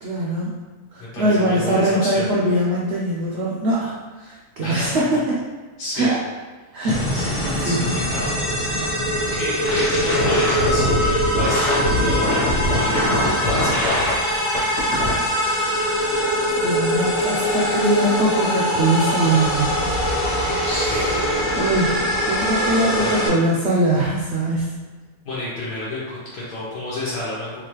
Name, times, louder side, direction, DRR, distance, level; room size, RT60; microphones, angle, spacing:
voice 1, 0.0-0.6 0.9-5.4 5.9-6.2 6.7-8.0 16.2-16.3 16.6-19.8 20.6-21.2 21.5-24.7, right 1 dB, 70° right, -4 dB, 0.6 m, -22 dB
voice 2, 1.1-2.3 4.6-5.0 5.8-6.1 7.1-9.0 9.3-14.1 20.6-21.1 22.8-23.2 25.3-27.7, left 1 dB, 90° left, -8 dB, 1.3 m, -30 dB
sound 1, 6.9-23.3, equal, 25° left, 0.8 m, -22 dB
sound 2, 9.7-14.1 14.5-15.1, left 1 dB, 55° left, 1.3 m, -22 dB
3.9 x 2.4 x 3.0 m, 1.3 s
omnidirectional pair, 1.6 m